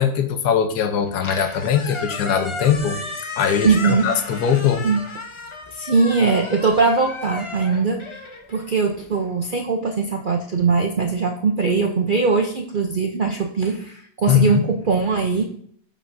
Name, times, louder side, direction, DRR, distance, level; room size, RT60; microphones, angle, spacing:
voice 1, 0.0-3.0 3.3-4.9 14.3-14.6, left 8 dB, 90° left, 8 dB, 1.3 m, -20 dB
Squeak, 1.0-9.3, left 3 dB, 40° left, 0.4 m, -34 dB
voice 2, 3.6-4.1 4.8-5.0 5.7-8.2 8.5-15.4, right 4 dB, 65° right, 2 dB, 0.5 m, -20 dB
11.0 x 5.2 x 2.6 m, 0.62 s
omnidirectional pair, 1.7 m